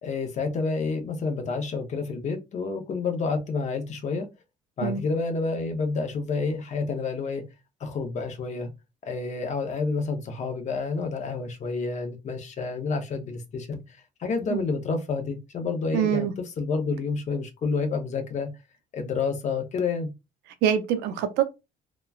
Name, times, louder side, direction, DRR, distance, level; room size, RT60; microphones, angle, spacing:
voice 1, 0.0-4.3 4.8-7.4 7.8-8.7 9.0-16.3 16.6-18.5 18.9-20.1, left 4 dB, 45° left, 0.7 m, -29 dB
voice 2, 15.9-16.3 20.6-21.4, right 9 dB, 85° right, 0.6 m, -24 dB
3.0 x 2.2 x 2.3 m
cardioid pair, 110°, 17 cm